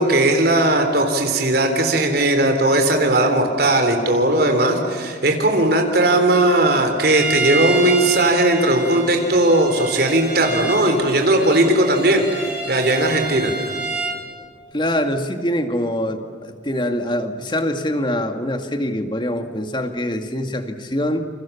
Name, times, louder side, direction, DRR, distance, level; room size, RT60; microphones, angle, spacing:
voice 1, 0.0-13.5, right 1 dB, 55° right, 4 dB, 3.5 m, -17 dB
Bowed string instrument, 7.0-14.2, right 3 dB, 5° right, 7.0 m, -28 dB
voice 2, 14.7-21.3, equal, 25° left, 6 dB, 2.1 m, -24 dB
29.0 x 28.5 x 7.3 m, 2.1 s
head